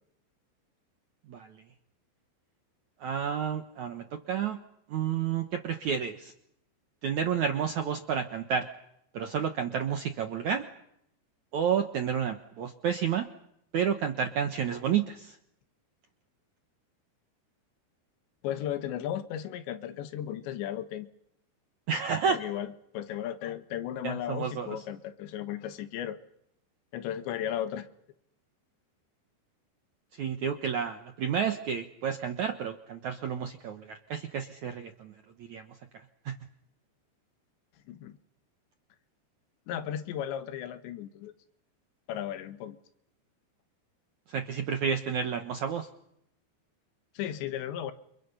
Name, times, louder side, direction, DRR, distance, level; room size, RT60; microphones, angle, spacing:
voice 1, 3.0-4.6 4.9-6.3 7.0-8.7 9.1-10.6 11.5-13.2 13.7-15.4 21.9-22.4 24.0-24.8 30.1-35.1 35.4-35.7 36.2-36.3 44.3-45.9, right 7 dB, 70° right, 6 dB, 1.8 m, -30 dB
voice 2, 18.4-21.1 22.3-26.2 26.9-27.9 37.9-38.1 39.7-41.3 42.1-42.8 47.1-47.9, left 10 dB, 80° left, 10 dB, 3.5 m, -35 dB
29.5 x 29.0 x 5.6 m, 0.76 s
omnidirectional pair, 5.1 m